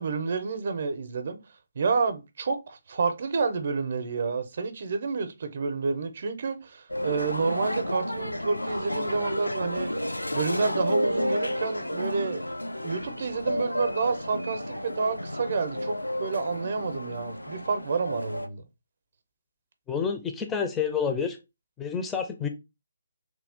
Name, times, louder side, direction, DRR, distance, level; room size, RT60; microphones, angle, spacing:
voice 1, 0.0-1.4 1.8-9.9 10.3-12.4 12.8-18.6, right 4 dB, 45° right, 0.5 m, -29 dB
sound 1, 6.9-18.5, left 1 dB, 80° left, 0.4 m, -31 dB
voice 2, 19.9-21.4 21.8-22.5, left 6 dB, 10° left, 0.4 m, -28 dB
3.1 x 2.3 x 3.4 m
figure-of-eight pair, 140°, 0 cm